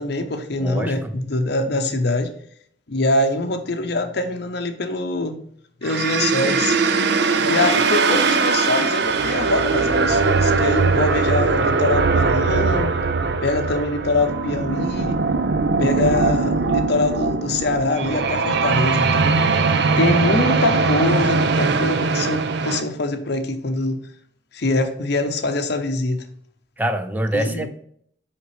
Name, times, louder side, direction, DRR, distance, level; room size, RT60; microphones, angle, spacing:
voice 1, 0.0-2.3 2.9-5.4 5.8-6.8 7.4-13.0 13.4-15.2 15.8-19.5 20.0-24.0 24.5-26.2 27.3-27.7, left 2 dB, 60° left, 0.8 m, -24 dB
voice 2, 0.6-1.1 21.8-21.9 26.8-27.7, right 1 dB, 10° right, 0.4 m, -25 dB
sound 1, 5.8-22.8, right 4 dB, 60° right, 0.5 m, -20 dB
5.8 x 5.1 x 3.2 m
head